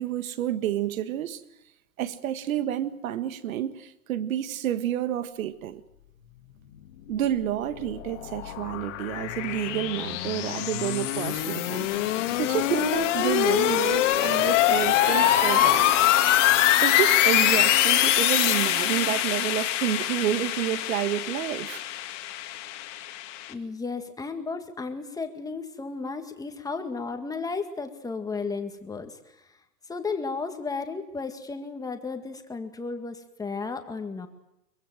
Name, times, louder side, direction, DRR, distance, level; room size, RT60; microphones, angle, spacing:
voice 1, 0.0-1.4 2.0-5.8 7.1-11.9 12.4-16.1 16.8-21.8, right 11 dB, 60° right, 1.7 m, -29 dB
sound 1, 7.5-23.5, left 14 dB, 50° left, 2.3 m, -24 dB
Trumpet, 14.9-19.2, right 7 dB, 45° right, 3.7 m, -37 dB
voice 2, 23.5-29.5 29.9-34.3, left 4 dB, 10° left, 2.0 m, -34 dB
23.5 x 21.5 x 7.8 m
hypercardioid pair, 130°, 45 cm